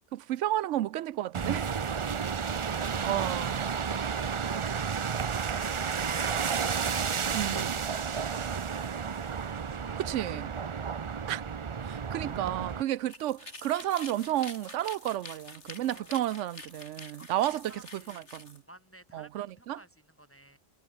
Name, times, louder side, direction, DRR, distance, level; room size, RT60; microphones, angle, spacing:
voice 1, 0.1-1.7 3.0-3.6 7.3-7.8 10.0-10.5 11.3-11.4 11.8-18.6 19.1-19.8, right 13 dB, 75° right, 0.9 m, -32 dB
sound 1, 1.3-12.8, right 6 dB, 40° right, 0.4 m, -32 dB
voice 2, 9.6-10.3 13.0-13.1 15.8-16.2 17.2-18.3 18.7-20.6, right 1 dB, 10° left, 2.7 m, -54 dB
sound 2, 13.0-18.6, left 2 dB, 65° left, 4.4 m, -47 dB
omnidirectional pair, 1.3 m